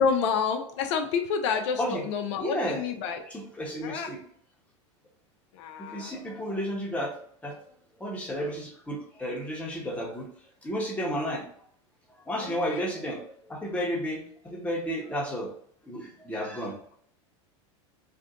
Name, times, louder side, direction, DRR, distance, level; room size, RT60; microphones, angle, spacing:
voice 1, 0.0-3.2 3.8-4.1 5.5-6.1 12.4-12.8, left 6 dB, 70° left, 5 dB, 0.5 m, -28 dB
voice 2, 2.4-2.8 3.3-4.2 5.8-7.1 7.4-7.6 8.0-10.3 10.6-11.4 12.3-15.5 15.9-16.7, equal, 10° left, -1 dB, 1.0 m, -32 dB
2.6 x 2.4 x 3.7 m, 0.63 s
hypercardioid pair, 105°, 16 cm